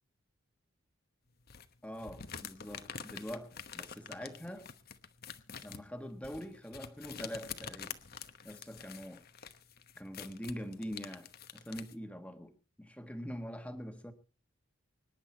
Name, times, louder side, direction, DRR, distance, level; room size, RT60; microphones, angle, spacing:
sound 1, 1.5-11.9, left 7 dB, 45° left, 1.1 m, -47 dB
voice 1, 1.8-4.7 5.6-8.0 8.4-9.2 10.0-14.1, equal, 5° left, 1.5 m, -44 dB
25.0 x 10.5 x 4.3 m
head